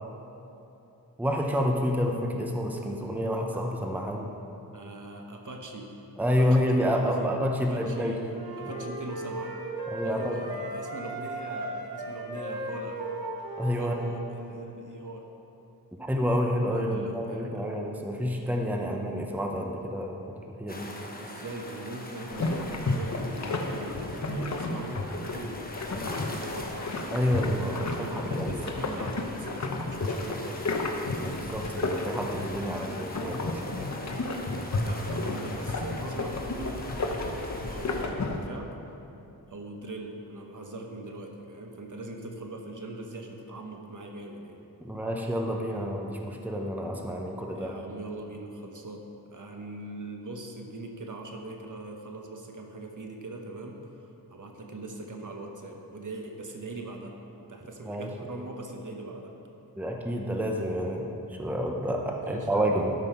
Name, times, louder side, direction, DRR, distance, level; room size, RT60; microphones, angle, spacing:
voice 1, 1.2-4.3 6.2-8.2 8.8-8.9 9.9-10.4 13.6-14.0 16.0-20.9 27.1-28.7 31.2-33.9 44.8-47.7 57.8-58.1 59.8-62.9, equal, 5° right, 1 dB, 0.8 m, -29 dB
voice 2, 4.7-6.0 6.4-8.3 8.6-9.5 10.0-13.0 13.7-15.3 16.7-17.8 21.2-27.4 27.8-30.7 34.3-38.8 39.5-44.6 47.5-59.3 62.2-62.9, right 2 dB, 55° right, 2 dB, 1.1 m, -41 dB
sound 1, 8.3-14.1, right 1 dB, 70° right, 1.5 m, -36 dB
sound 2, 20.7-38.0, left 1 dB, 25° left, 1.1 m, -43 dB
sound 3, 22.3-38.5, left 2 dB, 45° left, 0.9 m, -32 dB
12.5 x 5.6 x 5.6 m, 2.9 s
wide cardioid pair, 100°, 38 cm